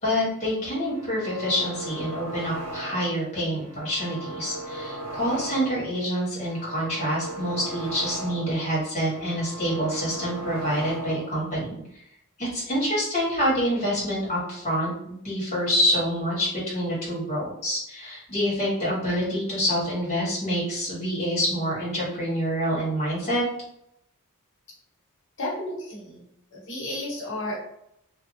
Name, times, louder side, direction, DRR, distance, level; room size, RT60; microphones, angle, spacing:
voice 1, 0.0-11.8 12.4-23.4, equal, 30° left, -7 dB, 1.3 m, -27 dB
abduction ray, 0.8-3.2 3.6-5.9 6.3-8.7 9.0-11.4, right 1 dB, 70° right, 0.9 m, -37 dB
voice 2, 25.4-27.5, left 1 dB, 60° left, -4 dB, 1.1 m, -33 dB
2.7 x 2.3 x 2.6 m, 0.76 s
head